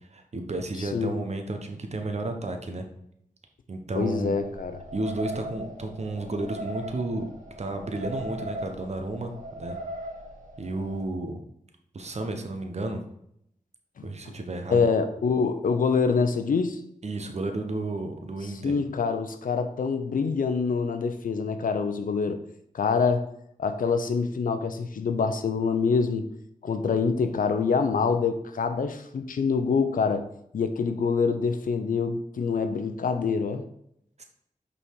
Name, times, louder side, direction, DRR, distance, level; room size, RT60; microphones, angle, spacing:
voice 1, 0.0-2.9 3.7-4.3 4.9-7.3 7.6-9.8 10.6-11.4 11.9-13.0 14.0-14.9 17.0-18.7 34.2-34.3, right 2 dB, 50° right, 5 dB, 1.0 m, -32 dB
voice 2, 0.8-1.2 3.9-4.8 14.0-14.1 14.7-16.8 18.6-22.4 22.7-23.3 23.6-26.3 26.6-30.3 30.5-33.6, left 5 dB, 80° left, 8 dB, 0.6 m, -25 dB
sound 1, 4.1-11.0, right 1 dB, 70° right, 1.5 m, -39 dB
5.6 x 4.2 x 4.6 m, 0.73 s
cardioid pair, 60°, 14 cm